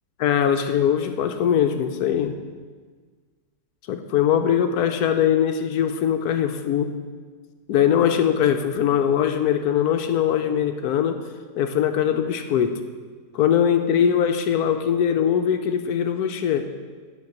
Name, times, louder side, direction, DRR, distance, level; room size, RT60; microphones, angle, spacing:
voice 1, 0.2-2.4 3.9-6.9 7.7-11.2 11.6-12.8 13.3-16.7, left 9 dB, 70° left, 7 dB, 1.1 m, -21 dB
9.4 x 5.3 x 7.1 m, 1.5 s
omnidirectional pair, 1.8 m